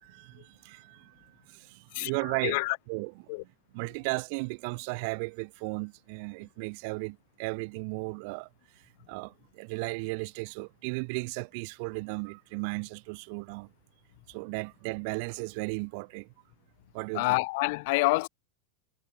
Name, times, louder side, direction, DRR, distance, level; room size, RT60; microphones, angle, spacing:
voice 1, 0.0-2.6 2.9-3.1 3.7-13.7 14.3-16.3 16.9-17.4, right 33 dB, 55° right, 1.6 m, -35 dB
voice 2, 2.4-2.8 3.3-3.4 17.1-18.3, left 24 dB, 60° left, 0.7 m, -27 dB
hypercardioid pair, 115°, 0 cm